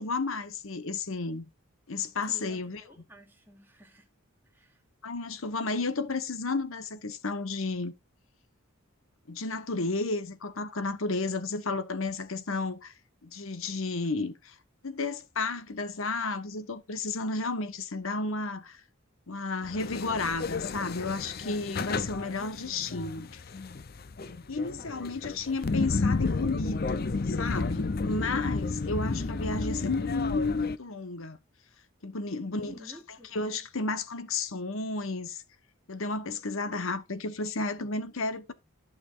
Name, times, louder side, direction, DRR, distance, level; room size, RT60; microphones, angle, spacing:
voice 1, 0.0-1.5 1.9-2.8 5.0-7.9 9.3-12.9 13.2-14.6 14.8-18.8 19.3-23.4 24.5-31.4 32.0-35.4 35.9-38.5, left 3 dB, 70° left, 1.2 m, -32 dB
voice 2, 2.3-4.1 4.5-4.8 11.5-11.6 24.2-25.0 32.5-33.4, left 1 dB, 10° right, 2.6 m, -52 dB
sound 1, 19.6-30.8, left 3 dB, 45° left, 0.6 m, -32 dB
14.5 x 6.3 x 2.5 m
head